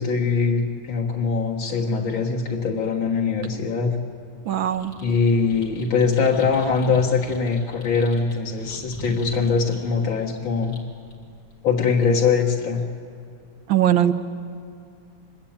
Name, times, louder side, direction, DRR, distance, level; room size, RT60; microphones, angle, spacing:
voice 1, 0.0-4.0 5.0-10.8 11.6-12.8, left 5 dB, 90° left, -1 dB, 2.2 m, -22 dB
voice 2, 4.5-4.9 13.7-14.1, right 11 dB, 85° right, 7 dB, 1.8 m, -20 dB
sound 1, 4.7-12.1, left 1 dB, 50° left, 3.4 m, -42 dB
25.0 x 22.5 x 8.8 m, 2.4 s
omnidirectional pair, 2.1 m